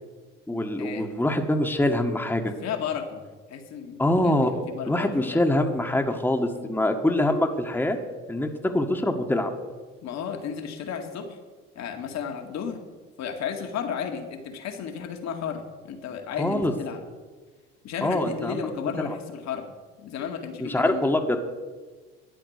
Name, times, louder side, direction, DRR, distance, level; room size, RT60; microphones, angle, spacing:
voice 1, 0.5-2.5 4.0-4.5 4.9-8.0 8.3-9.5 16.4-16.7 18.0-18.6 19.0-19.1 20.6-21.4, left 1 dB, 5° left, 3 dB, 1.5 m, -24 dB
voice 2, 2.6-3.2 3.5-5.4 6.5-6.7 10.0-11.4 11.8-12.8 13.2-17.0 17.8-19.7 20.0-21.1, left 7 dB, 65° left, 4 dB, 2.1 m, -33 dB
12.5 x 9.0 x 6.6 m, 1.4 s
hypercardioid pair, 70°, 30 cm